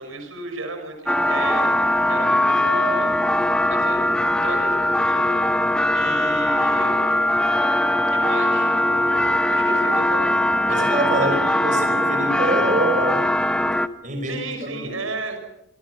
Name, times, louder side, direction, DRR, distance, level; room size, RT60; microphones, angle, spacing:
voice 1, 0.0-1.7 2.0-3.2 3.7-4.0 4.4-5.6 5.9-7.0 8.1-8.8 9.5-10.3 10.7-11.3 14.2-15.4, right 3 dB, 80° right, 6.4 m, -33 dB
sound 1, 1.1-13.9, left 1 dB, 5° left, 0.8 m, -20 dB
voice 2, 10.7-13.3 14.0-14.9, right 1 dB, 35° right, 5.2 m, -25 dB
26.5 x 25.5 x 6.1 m
head